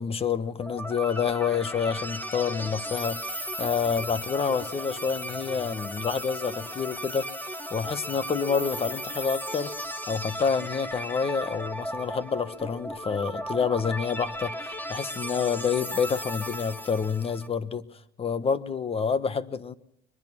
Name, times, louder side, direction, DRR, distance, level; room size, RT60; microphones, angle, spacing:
voice 1, 0.0-7.3 7.7-9.7 10.1-17.8 18.2-19.7, left 6 dB, 35° left, 1.2 m, -28 dB
sound 1, 0.6-17.5, equal, 10° left, 2.3 m, -36 dB
22.5 x 22.0 x 6.1 m
cardioid pair, 110°, 17 cm